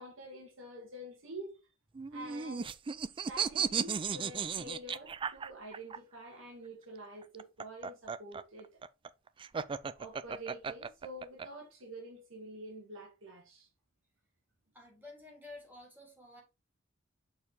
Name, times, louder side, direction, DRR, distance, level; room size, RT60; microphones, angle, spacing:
voice 1, 0.0-1.7 2.1-2.7 3.1-8.8 9.9-13.7, right 1 dB, 70° right, 1.7 m, -47 dB
sound 1, 1.9-6.0 7.2-11.5, right 6 dB, 25° right, 0.3 m, -35 dB
voice 2, 14.7-16.4, left 2 dB, 10° right, 3.3 m, -52 dB
6.5 x 4.6 x 3.5 m
head